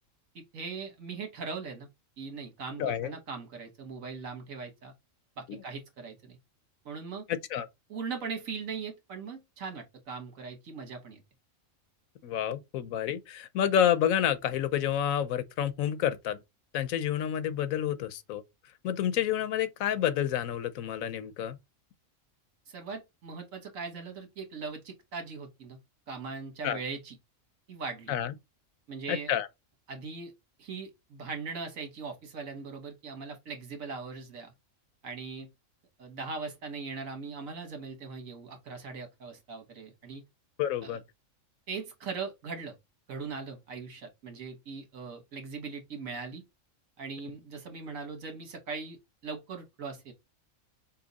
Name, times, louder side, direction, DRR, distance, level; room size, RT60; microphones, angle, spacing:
voice 1, 0.3-1.9 2.2-4.9 5.4-6.4 6.8-7.3 7.9-11.2 22.7-25.8 26.1-27.2 27.7-28.1 28.9-29.3 29.9-30.3 30.6-34.5 35.0-35.5 36.0-40.2 40.8-41.0 41.7-42.7 43.1-46.4 47.0-50.1, right 5 dB, 75° right, 1.6 m, -40 dB
voice 2, 2.8-3.1 5.5-5.6 7.3-7.7 12.2-16.4 16.7-18.4 18.8-21.6 26.6-26.8 28.1-28.3 29.1-29.5 40.6-41.0, left 10 dB, 80° left, 1.1 m, -29 dB
5.6 x 2.3 x 4.0 m
omnidirectional pair, 1.4 m